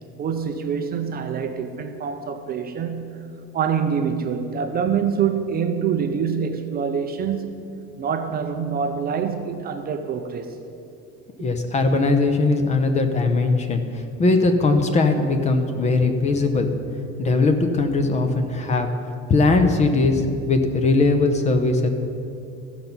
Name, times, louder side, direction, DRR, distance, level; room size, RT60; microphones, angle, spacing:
voice 1, 0.2-3.3 3.5-7.5 8.0-10.6, right 7 dB, 30° right, 7 dB, 0.5 m, -25 dB
voice 2, 11.4-13.8 14.2-16.7 17.2-18.9 19.3-21.9, left 3 dB, 25° left, 7 dB, 0.7 m, -20 dB
14.0 x 5.9 x 5.4 m, 2.6 s
cardioid pair, 160°, 29 cm